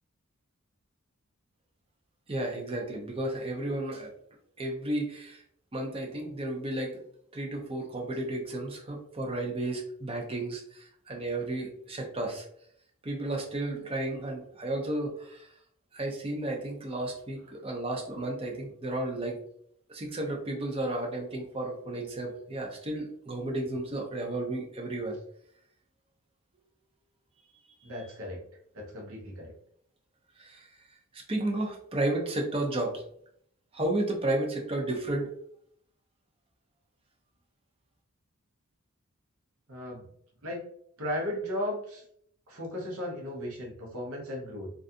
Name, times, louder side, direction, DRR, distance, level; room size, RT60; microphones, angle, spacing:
voice 1, 2.3-4.1 4.6-5.4 5.7-7.0 7.3-12.5 13.0-15.5 15.9-19.4 19.9-25.2 30.4-30.7 31.1-33.0 33.7-35.3, right 1 dB, 25° right, 0 dB, 0.5 m, -33 dB
voice 2, 27.8-28.4 28.7-29.5 39.7-40.1 40.4-40.6 41.0-42.0 42.5-44.7, left 1 dB, 75° right, 0 dB, 0.8 m, -36 dB
2.4 x 2.4 x 2.5 m, 0.67 s
head